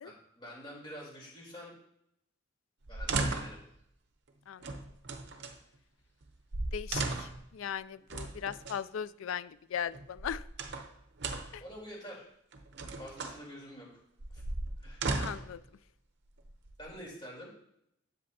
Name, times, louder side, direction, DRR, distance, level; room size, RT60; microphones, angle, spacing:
voice 1, 0.0-1.7 2.9-3.6 11.6-12.3 13.0-13.9 14.3-14.4 14.8-15.0 16.8-17.5, equal, 25° left, -4 dB, 3.7 m, -47 dB
sound 1, 2.8-3.6 4.6-5.6 6.2-6.3 6.5-7.5 8.1-8.8 9.9-10.9 11.2-11.6 12.5-13.4 14.2-15.6 16.4-17.1, right 3 dB, 55° right, 0.8 m, -36 dB
voice 2, 4.5-4.8 6.7-10.4 11.5-11.6 15.1-15.6, left 8 dB, 80° left, 17 dB, 0.4 m, -38 dB
10.5 x 7.8 x 2.8 m, 0.74 s
head